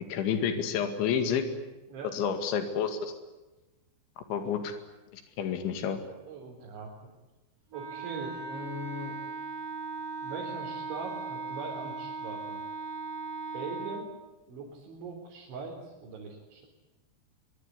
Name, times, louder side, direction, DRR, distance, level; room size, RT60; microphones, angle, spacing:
voice 1, 0.1-1.4 2.1-3.1 4.3-4.7 5.1-6.0, left 7 dB, 85° left, 7 dB, 4.5 m, -29 dB
voice 2, 6.2-7.2 7.7-9.2 10.2-12.6 13.5-14.1 14.5-16.7, right 3 dB, 85° right, -1 dB, 6.3 m, -41 dB
Wind instrument woodwind instrument, 7.7-14.1, right 4 dB, 25° right, 2.9 m, -38 dB
24.0 x 23.0 x 9.9 m, 1.1 s
omnidirectional pair, 5.2 m